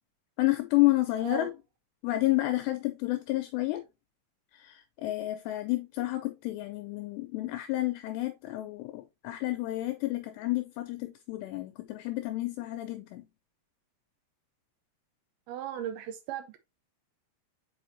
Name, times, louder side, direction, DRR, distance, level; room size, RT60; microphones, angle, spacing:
voice 1, 0.4-1.5 2.0-3.8 4.5-13.3, left 18 dB, 80° left, 2.6 m, -30 dB
voice 2, 1.2-1.5 15.5-16.6, right 10 dB, 85° right, 2.2 m, -37 dB
7.4 x 5.1 x 2.6 m
omnidirectional pair, 5.3 m